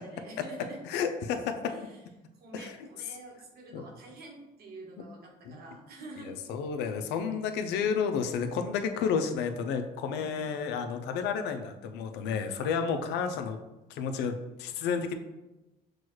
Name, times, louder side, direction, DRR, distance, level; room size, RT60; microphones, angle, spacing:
voice 1, 0.0-0.8 1.7-2.0 2.4-6.5 10.0-10.5, right 2 dB, 65° right, 0 dB, 1.1 m, -47 dB
voice 2, 0.8-1.7 2.5-2.7 3.7-3.8 5.4-5.6 6.3-13.6 13.9-15.1, left 6 dB, 85° left, 7 dB, 0.5 m, -31 dB
6.1 x 2.3 x 3.0 m, 1.0 s
cardioid pair, 110°, 17 cm